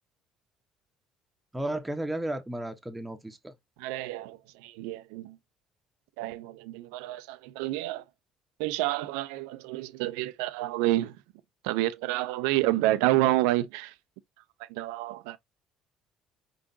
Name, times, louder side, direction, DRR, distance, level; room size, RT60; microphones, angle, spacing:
voice 1, 1.5-3.5 12.6-12.9, right 1 dB, 10° right, 1.0 m, -34 dB
voice 2, 3.8-5.4 6.2-8.0 8.6-11.2 11.6-13.9 14.6-15.4, right 16 dB, 85° right, 0.5 m, -29 dB
4.9 x 3.8 x 2.7 m
supercardioid pair, 75°, 0 cm